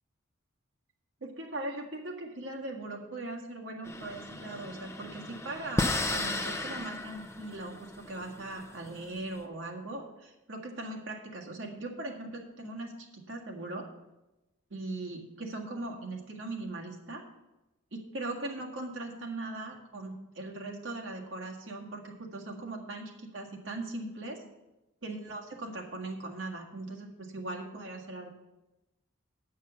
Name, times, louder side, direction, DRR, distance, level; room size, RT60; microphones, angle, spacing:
voice 1, 1.2-13.8 14.7-17.2 17.9-24.4 25.0-28.3, right 2 dB, 65° right, 0 dB, 1.8 m, -39 dB
sound 1, 3.8-9.4, left 2 dB, 15° left, 0.6 m, -35 dB
9.1 x 6.6 x 6.8 m, 1.0 s
head